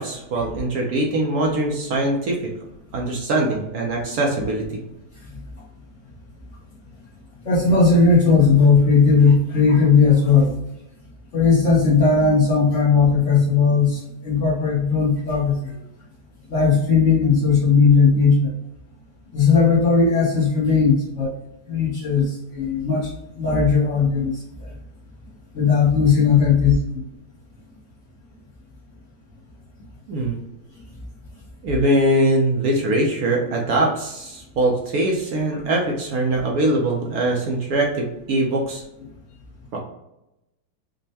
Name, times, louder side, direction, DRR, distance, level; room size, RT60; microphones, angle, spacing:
voice 1, 0.0-2.4 2.9-4.6 30.1-30.4 31.6-38.8 39.7-39.8, right 1 dB, 65° right, -1 dB, 1.0 m, -22 dB
voice 2, 7.4-10.5 11.3-15.6 16.5-18.5 19.3-21.3 21.7-23.1 23.4-24.4 25.5-27.0, left 5 dB, 50° left, -5 dB, 1.0 m, -17 dB
5.3 x 2.1 x 2.7 m, 0.87 s
omnidirectional pair, 2.1 m